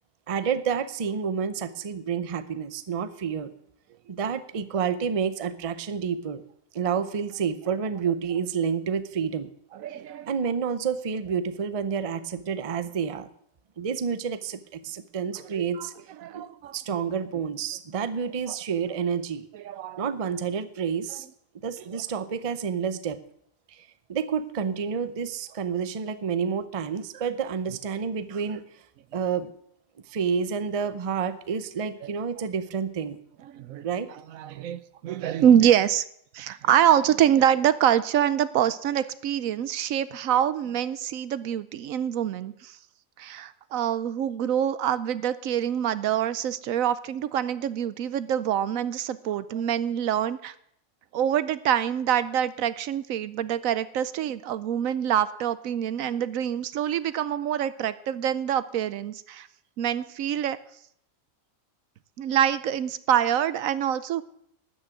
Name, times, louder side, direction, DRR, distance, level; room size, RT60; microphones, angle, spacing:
voice 1, 0.3-3.5 4.1-6.4 6.7-9.5 10.3-13.3 13.8-15.9 16.3-19.4 20.0-21.3 21.6-23.2 23.7-28.6 29.1-29.5 30.1-33.2 33.8-34.1, right 6 dB, 35° right, 13 dB, 0.6 m, -29 dB
voice 2, 9.7-10.3 15.5-15.9 16.2-16.8 19.5-20.0 21.9-22.0 32.0-32.1 33.5-33.9 34.3-36.0 36.3-42.8 43.2-50.5 51.1-59.5 59.8-60.6 62.2-64.2, right 10 dB, 80° right, 15 dB, 1.1 m, -25 dB
13.0 x 6.4 x 9.0 m, 0.70 s
omnidirectional pair, 1.4 m